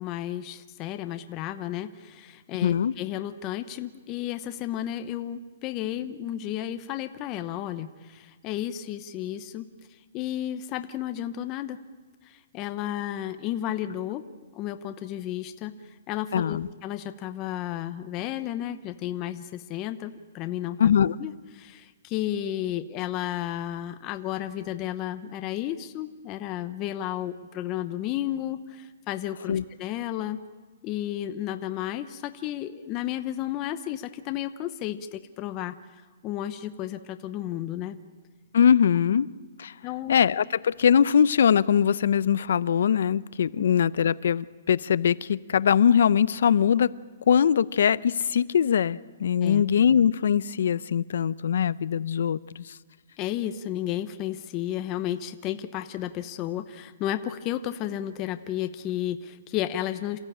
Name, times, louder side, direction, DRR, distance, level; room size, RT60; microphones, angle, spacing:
voice 1, 0.0-9.7 10.1-11.8 12.2-14.2 14.5-15.7 16.1-20.9 21.2-30.4 30.8-35.7 36.2-38.0 39.1-39.2 39.8-40.2 43.6-43.7 49.4-49.6 53.2-60.2, left 12 dB, 25° left, 0.7 m, -32 dB
voice 2, 2.6-2.9 16.3-16.7 20.8-21.2 29.5-29.6 38.5-39.3 39.6-39.7 40.1-46.9 47.3-52.7, left 8 dB, 65° left, 0.6 m, -22 dB
28.0 x 14.5 x 8.8 m
hypercardioid pair, 165°, 0 cm